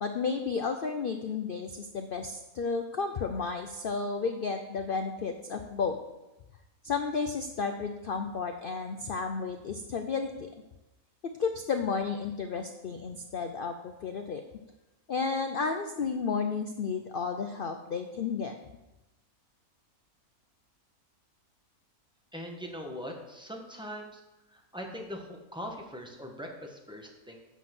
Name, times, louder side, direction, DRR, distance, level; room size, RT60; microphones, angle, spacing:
voice 1, 0.0-6.0 6.8-10.3 11.4-14.4 15.1-18.6, left 5 dB, 60° left, 6 dB, 0.5 m, -32 dB
voice 2, 22.3-24.2 24.5-27.4, equal, 5° right, 0 dB, 1.1 m, -41 dB
8.1 x 6.0 x 6.0 m, 0.99 s
omnidirectional pair, 1.6 m